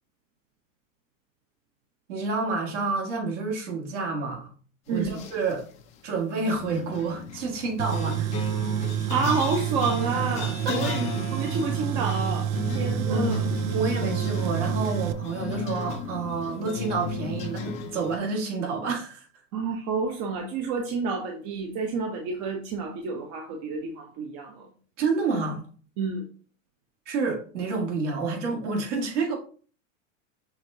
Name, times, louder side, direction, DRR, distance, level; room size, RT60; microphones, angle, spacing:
voice 1, 2.1-4.5 4.9-5.7 6.0-8.3 10.7-10.9 13.0-13.3 13.7-19.3 25.0-25.6 27.1-29.4, right 4 dB, 65° right, 1.8 m, -29 dB
voice 2, 4.9-5.2 9.1-11.1 11.3-12.5 12.7-13.5 19.5-24.7 26.0-26.2, right 4 dB, 40° right, 0.7 m, -29 dB
sound 1, 5.0-5.6 6.5-18.2, left 4 dB, 20° left, 0.4 m, -34 dB
Tools, 7.8-15.1, right 11 dB, 90° right, 0.6 m, -29 dB
5.8 x 3.4 x 2.7 m
supercardioid pair, 140°, 39 cm